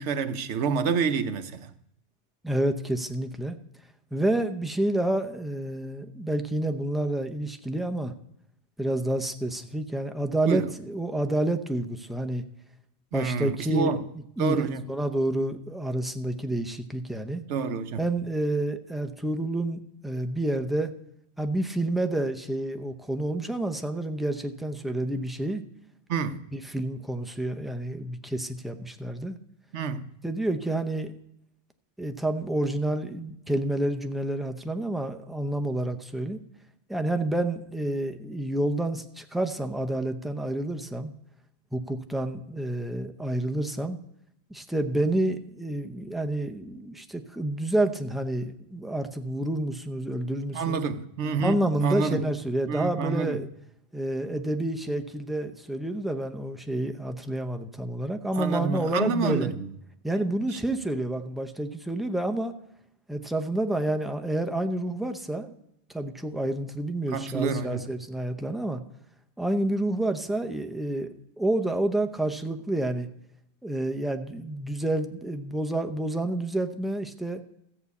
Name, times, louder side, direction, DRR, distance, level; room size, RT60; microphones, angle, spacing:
voice 1, 0.0-1.7 10.5-10.7 13.1-14.0 14.4-14.8 17.5-18.0 26.1-26.4 29.7-30.0 50.5-52.2 52.7-53.4 58.4-59.7 60.5-60.6 67.1-67.9, right 5 dB, 90° right, 1.1 m, -28 dB
voice 2, 2.4-3.6 4.1-8.1 8.8-12.4 13.1-14.0 14.4-17.4 18.0-20.9 21.4-25.6 26.5-29.4 30.2-31.2 32.0-36.4 36.9-41.1 41.7-44.0 44.5-50.8 51.4-53.5 53.9-59.5 60.0-62.5 63.1-65.6 65.9-68.8 69.4-73.1 73.6-77.4, right 1 dB, ahead, 0.6 m, -29 dB
14.0 x 5.5 x 8.3 m
omnidirectional pair, 1.1 m